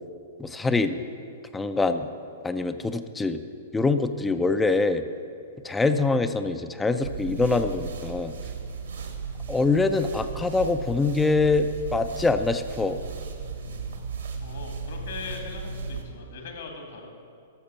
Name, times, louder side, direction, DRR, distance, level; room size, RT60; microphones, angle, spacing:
voice 1, 0.4-1.0 1.5-2.1 2.4-3.4 3.7-5.0 5.6-8.3 9.5-13.0, left 3 dB, 10° left, 10 dB, 0.4 m, -24 dB
sound 1, 7.0-16.0, right 5 dB, 70° right, 1.3 m, -36 dB
voice 2, 14.4-17.1, left 4 dB, 60° left, 2 dB, 2.0 m, -40 dB
12.5 x 6.6 x 5.6 m, 2.4 s
figure-of-eight pair, 110°, 0 cm